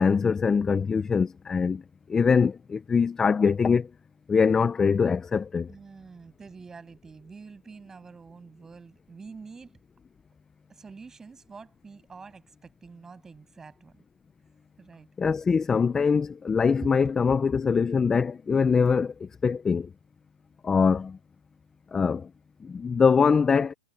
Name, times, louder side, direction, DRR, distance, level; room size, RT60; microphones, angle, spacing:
voice 1, 0.0-1.8 2.1-3.9 4.3-5.7 15.2-19.9 20.6-21.2 21.9-22.3 22.6-23.7, left 5 dB, 15° left, 0.8 m, -23 dB
voice 2, 5.7-9.7 10.7-14.0 14.8-15.1, right 4 dB, 10° right, 7.4 m, -47 dB
hypercardioid pair, 135°, 4 cm